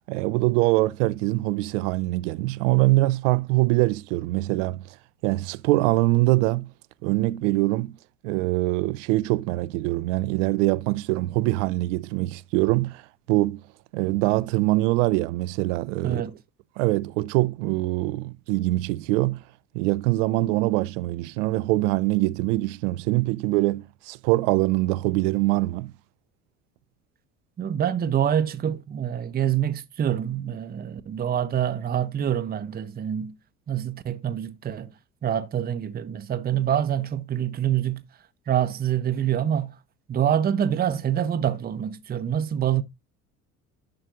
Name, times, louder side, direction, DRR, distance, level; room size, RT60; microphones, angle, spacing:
voice 1, 0.1-5.0 5.2-6.7 7.0-7.9 8.2-13.6 13.9-16.2 16.8-19.4 19.7-25.9, right 19 dB, 60° right, 0.5 m, -23 dB
voice 2, 16.0-16.3 27.6-33.4 33.7-34.9 35.2-38.0 38.5-39.8 40.1-42.8, right 9 dB, 20° right, 0.6 m, -26 dB
11.5 x 6.1 x 2.5 m
figure-of-eight pair, 60°, 43 cm